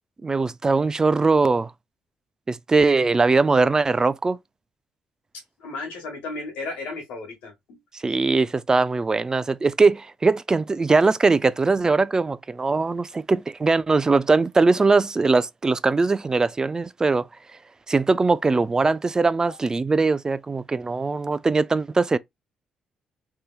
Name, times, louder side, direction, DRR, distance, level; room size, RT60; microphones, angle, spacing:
voice 1, 0.2-1.7 2.5-4.4 7.9-17.3 17.9-22.2, right 3 dB, 25° right, 0.3 m, -21 dB
voice 2, 5.6-7.8 19.5-19.6, left 3 dB, 85° left, 1.6 m, -34 dB
3.4 x 2.8 x 2.4 m
supercardioid pair, 60°, 2 cm